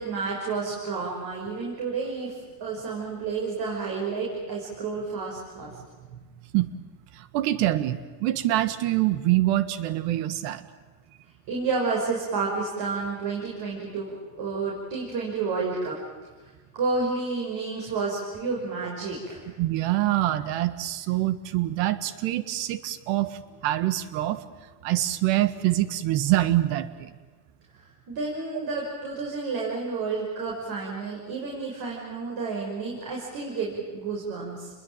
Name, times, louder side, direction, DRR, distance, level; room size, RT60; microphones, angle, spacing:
voice 1, 0.0-5.7 11.5-16.0 16.7-19.4 27.8-34.7, right 4 dB, 60° right, -2 dB, 6.2 m, -30 dB
voice 2, 7.1-10.7 19.6-24.4 24.8-27.1, right 15 dB, 85° right, 13 dB, 1.7 m, -25 dB
29.0 x 21.5 x 9.1 m, 1.3 s
cardioid pair, 120°, 43 cm